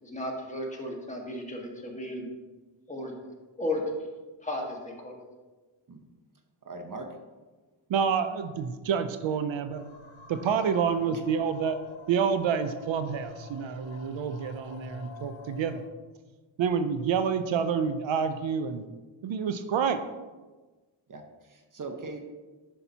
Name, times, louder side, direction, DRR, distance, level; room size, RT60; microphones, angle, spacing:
voice 1, 0.0-2.3 2.9-3.1 3.6-3.8 4.4-5.2, left 1 dB, 15° left, -1 dB, 1.5 m, -34 dB
voice 2, 6.6-7.1 11.1-11.2 21.1-22.2, right 3 dB, 40° right, 4 dB, 0.9 m, -40 dB
voice 3, 7.9-9.8 10.3-11.8 12.1-15.8 16.6-18.8 19.2-20.0, right 7 dB, 70° right, 9 dB, 0.6 m, -28 dB
sound 1, 9.7-15.9, left 2 dB, 75° left, 1.4 m, -48 dB
9.8 x 5.7 x 2.8 m, 1.2 s
wide cardioid pair, 100°, 47 cm